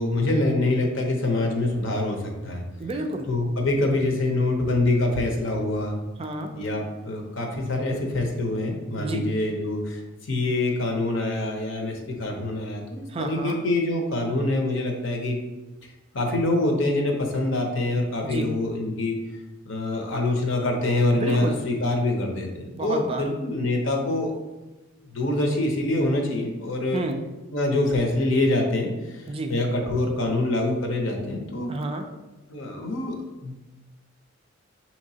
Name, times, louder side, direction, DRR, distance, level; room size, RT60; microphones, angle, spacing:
voice 1, 0.0-2.6 3.3-6.0 6.5-15.4 16.1-19.2 19.7-24.3 25.1-27.0 27.5-31.7 32.5-33.2 33.4-33.6, left 2 dB, 65° left, 2 dB, 0.8 m, -25 dB
voice 2, 2.8-3.3 6.2-6.5 9.0-9.2 13.1-13.6 18.2-18.5 21.1-21.6 22.7-23.3 26.9-27.2 29.3-29.5 31.7-32.0, right 2 dB, 25° right, 4 dB, 0.3 m, -30 dB
6.3 x 2.9 x 2.8 m, 1.1 s
head